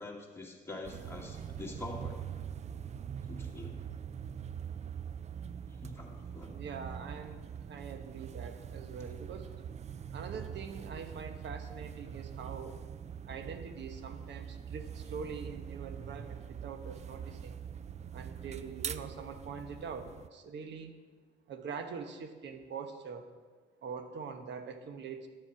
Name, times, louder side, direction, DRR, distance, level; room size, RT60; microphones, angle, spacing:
voice 1, 0.0-2.2 3.3-3.8 5.7-6.6, left 2 dB, 10° left, -2 dB, 2.1 m, -45 dB
sound 1, 0.8-20.3, right 8 dB, 35° right, 0.3 m, -43 dB
voice 2, 6.5-9.5 10.1-12.8 13.3-17.6 18.1-20.9 21.5-23.3 23.8-25.3, right 5 dB, 65° right, 7 dB, 1.0 m, -44 dB
11.0 x 7.4 x 4.6 m, 1.5 s
cardioid pair, 90°, 20 cm